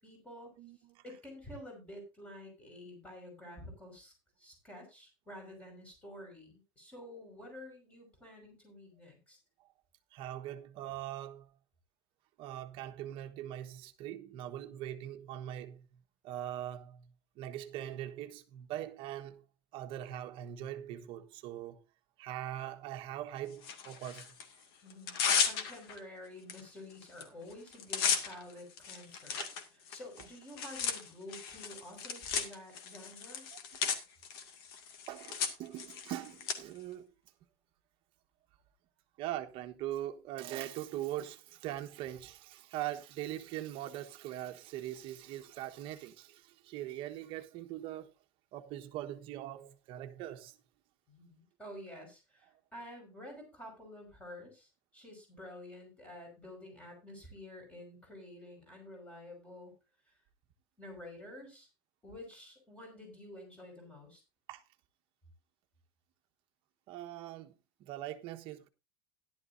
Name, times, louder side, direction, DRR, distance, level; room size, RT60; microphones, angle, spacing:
voice 1, 0.0-0.5 1.0-4.1 4.4-9.4 24.8-29.4 29.9-33.5 51.1-59.7 60.1-60.2 60.8-61.7 62.0-64.2, left 1 dB, 10° left, 5.5 m, -50 dB
voice 2, 0.6-1.0 9.6-9.7 10.1-11.5 12.4-19.4 19.7-21.8 22.2-24.3 29.3-29.5 35.1-37.1 39.2-48.1 48.5-50.6 64.5-64.6 66.9-68.7, right 12 dB, 45° right, 1.2 m, -42 dB
Tearing, 23.6-24.4 24.9-26.0 26.5-26.6 26.9-27.2 27.5-36.5, left 6 dB, 90° left, 2.2 m, -35 dB
14.5 x 11.5 x 2.6 m
cardioid pair, 170°, 13 cm